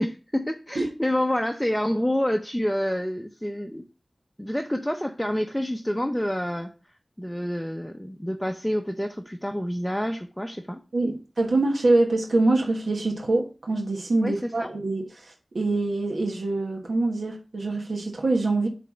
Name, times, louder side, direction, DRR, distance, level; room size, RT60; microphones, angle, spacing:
voice 1, 0.0-3.9 4.4-6.7 7.2-11.2 14.2-14.7, equal, 5° left, 0.6 m, -28 dB
voice 2, 10.9-18.7, right 2 dB, 85° right, 1.4 m, -24 dB
8.2 x 3.4 x 6.2 m
wide cardioid pair, 75°, 0 cm